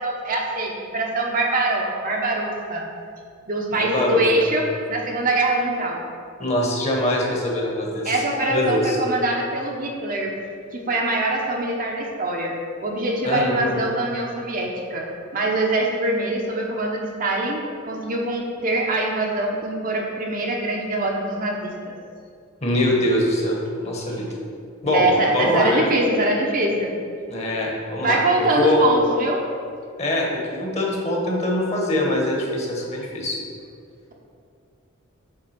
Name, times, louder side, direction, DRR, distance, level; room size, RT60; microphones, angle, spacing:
voice 1, 0.0-2.9 3.5-6.0 8.0-10.3 10.7-12.5 12.8-15.1 15.3-22.0 24.9-26.9 28.0-29.4, right 2 dB, 40° right, 0 dB, 0.8 m, -23 dB
voice 2, 3.7-4.2 6.4-8.1 8.5-9.0 13.2-13.7 22.6-24.3 24.8-25.1 25.3-25.8 27.3-28.8 30.0-33.4, left 1 dB, 30° left, -1 dB, 1.2 m, -23 dB
7.5 x 3.5 x 5.9 m, 2.3 s
head